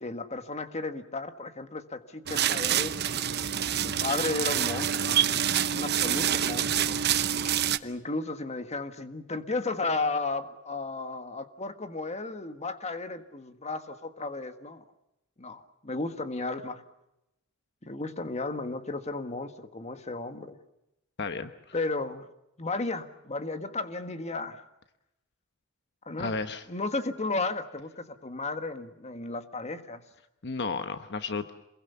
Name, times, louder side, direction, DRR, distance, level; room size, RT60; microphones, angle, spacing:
voice 1, 0.0-3.0 3.4-5.2 5.7-7.0 7.8-14.8 15.4-16.8 17.8-20.6 21.7-22.3 22.6-24.6 26.0-26.3 26.7-30.0, left 3 dB, 30° left, 9 dB, 1.6 m, -34 dB
sound 1, 2.3-7.8, right 9 dB, 50° right, 0.9 m, -27 dB
voice 2, 21.2-21.5 26.2-26.6 30.4-31.5, left 4 dB, 55° left, 9 dB, 1.1 m, -32 dB
27.5 x 22.0 x 7.0 m, 0.90 s
head